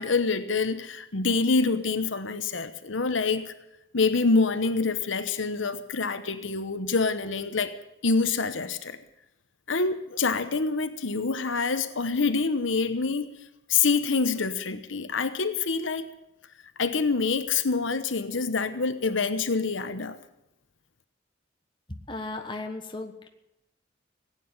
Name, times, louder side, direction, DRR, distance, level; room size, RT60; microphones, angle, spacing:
voice 1, 0.0-3.5 3.9-7.7 8.0-9.0 9.7-13.3 13.7-16.1 16.8-20.2, left 4 dB, 85° left, 1.0 m, -26 dB
voice 2, 21.9-23.3, left 2 dB, 25° left, 1.3 m, -36 dB
16.5 x 9.2 x 8.9 m
head